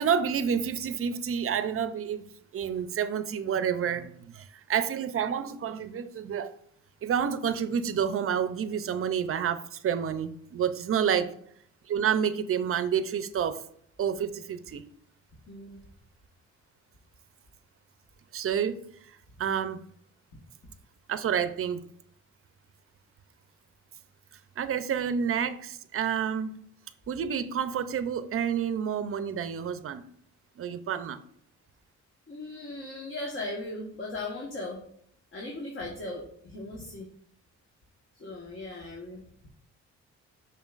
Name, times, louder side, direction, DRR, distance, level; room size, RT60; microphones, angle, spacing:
voice 1, 0.0-6.5 7.0-11.3 11.9-13.6 14.0-14.8 18.3-18.8 19.4-19.8 21.1-21.8 24.6-26.5 27.1-30.1 30.6-31.2, right 8 dB, 45° right, 0.5 m, -29 dB
voice 2, 15.5-15.8 32.3-34.8 35.3-37.1 38.1-39.2, left 2 dB, 40° left, 1.4 m, -38 dB
7.1 x 5.7 x 2.5 m
cardioid pair, 90°, 30 cm